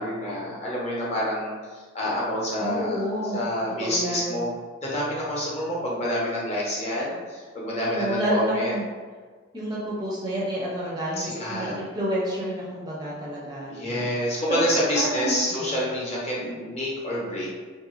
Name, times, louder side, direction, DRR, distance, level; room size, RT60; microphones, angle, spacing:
voice 1, 0.0-3.0 3.3-4.5 4.8-8.7 11.2-11.8 13.7-17.5, equal, 35° left, -6 dB, 0.8 m, -27 dB
voice 2, 2.6-3.4 3.8-4.4 7.8-8.9 9.5-14.1 14.5-14.6 15.0-15.7 16.4-16.5, equal, 20° right, -6 dB, 0.5 m, -29 dB
2.7 x 2.5 x 3.0 m, 1.5 s
head